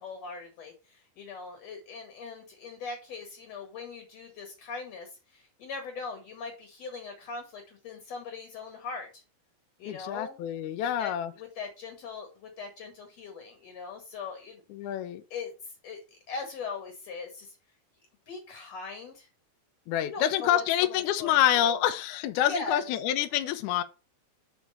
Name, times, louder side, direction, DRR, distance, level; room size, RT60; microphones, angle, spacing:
voice 1, 0.0-9.2 9.8-10.4 10.8-14.9 15.3-17.6 18.3-19.3 20.1-20.6 20.9-21.8 22.5-22.8, left 4 dB, 60° left, 2.0 m, -40 dB
voice 2, 9.9-11.3 14.7-15.2 19.9-23.8, left 11 dB, 85° left, 1.7 m, -27 dB
5.2 x 4.6 x 5.2 m
omnidirectional pair, 4.3 m